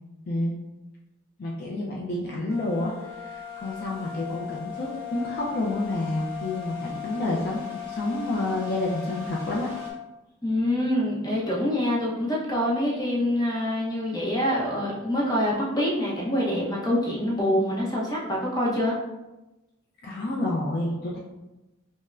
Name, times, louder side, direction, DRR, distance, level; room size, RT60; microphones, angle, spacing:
voice 1, 1.4-9.7 20.0-21.2, left 2 dB, 50° left, -3 dB, 0.4 m, -29 dB
sound 1, 2.5-9.9, left 10 dB, 10° right, 1.0 m, -38 dB
voice 2, 10.4-18.9, left 1 dB, 20° left, -5 dB, 0.8 m, -25 dB
5.3 x 2.1 x 2.4 m, 1.0 s
head